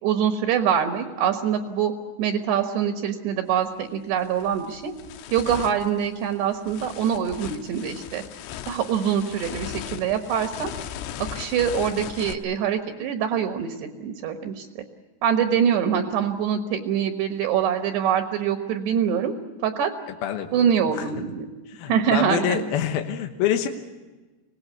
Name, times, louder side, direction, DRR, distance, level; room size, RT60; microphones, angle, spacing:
voice 1, 0.0-1.9 2.2-4.9 5.3-8.2 8.6-10.7 11.3-14.8 15.2-19.3 19.6-19.9 20.5-21.5 21.9-22.6, right 8 dB, 65° right, 6 dB, 3.1 m, -24 dB
sound 1, 3.5-3.7 4.1-12.3, left 10 dB, 90° left, 3.7 m, -38 dB
voice 2, 21.7-23.7, left 10 dB, 70° left, 4 dB, 2.4 m, -26 dB
25.0 x 19.0 x 8.2 m, 1.2 s
omnidirectional pair, 5.8 m